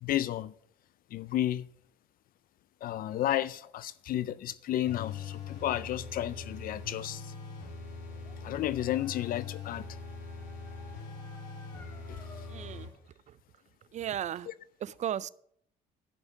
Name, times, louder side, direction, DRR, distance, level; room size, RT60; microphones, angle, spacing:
voice 1, 0.0-0.5 1.1-1.7 2.8-7.3 8.4-9.8 12.1-12.2 14.5-14.6, left 12 dB, 60° left, 0.4 m, -32 dB
sound 1, 4.9-12.9, left 5 dB, 90° left, 2.9 m, -42 dB
Dog, 7.9-13.0, left 1 dB, 15° left, 2.2 m, -56 dB
voice 2, 12.5-12.9 13.3-13.4 13.9-14.5 14.8-15.3, right 10 dB, 45° right, 0.4 m, -35 dB
11.0 x 5.5 x 7.2 m
cardioid pair, 110°, 17 cm